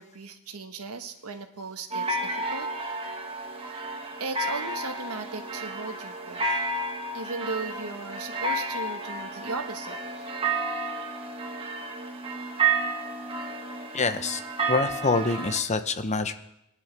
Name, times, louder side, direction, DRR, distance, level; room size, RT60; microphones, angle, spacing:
voice 1, 0.0-2.7 4.2-6.6 7.1-10.0, right 3 dB, 80° right, 6 dB, 1.2 m, -37 dB
sound 1, 1.9-15.6, right 3 dB, 25° right, 1.3 m, -31 dB
voice 2, 13.9-14.4 14.7-16.3, left 3 dB, 30° left, 10 dB, 0.7 m, -26 dB
21.0 x 10.5 x 3.4 m, 0.83 s
head